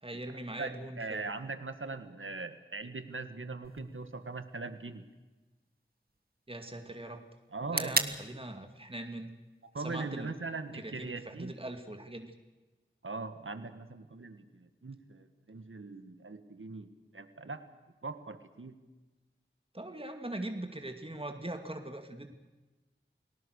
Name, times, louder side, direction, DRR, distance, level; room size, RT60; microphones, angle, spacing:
voice 1, 0.0-1.3 6.5-7.2 7.7-9.3 9.8-10.3 10.8-12.3 19.7-22.3, right 1 dB, 25° right, 5 dB, 2.2 m, -41 dB
voice 2, 0.6-5.0 7.5-8.0 9.7-11.5 13.0-17.7 18.0-18.8, right 3 dB, 85° right, 10 dB, 1.7 m, -41 dB
sound 1, 3.6-11.6, right 2 dB, 50° right, 1.6 m, -41 dB
29.5 x 19.0 x 6.5 m, 1.2 s
wide cardioid pair, 45°, 20 cm